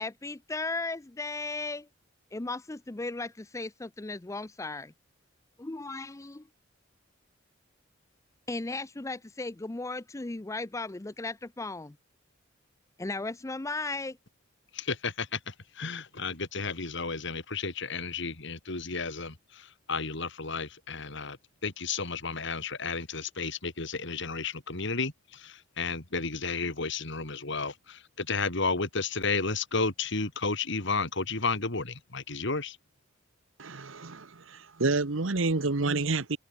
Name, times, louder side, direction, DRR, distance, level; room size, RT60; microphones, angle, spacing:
voice 1, 0.0-1.9 2.3-4.9 5.6-6.4 8.5-12.0 13.0-14.2, left 3 dB, 15° left, 0.5 m, -36 dB
voice 2, 14.7-21.4 21.6-32.8, left 4 dB, 65° left, 3.5 m, -32 dB
voice 3, 33.6-36.4, right 3 dB, 85° right, 1.2 m, -29 dB
head